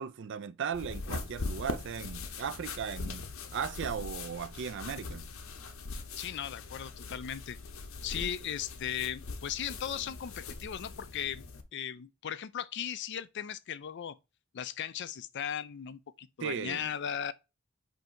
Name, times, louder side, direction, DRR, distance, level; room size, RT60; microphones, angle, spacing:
voice 1, 0.0-3.2 3.5-5.3 16.4-16.9, right 7 dB, 60° right, 0.4 m, -37 dB
sound 1, 0.7-11.6, left 3 dB, 75° left, 0.8 m, -41 dB
voice 2, 6.2-7.6 8.0-11.4 11.7-14.2 14.5-17.3, left 9 dB, 55° left, 0.4 m, -37 dB
7.8 x 2.7 x 4.5 m
head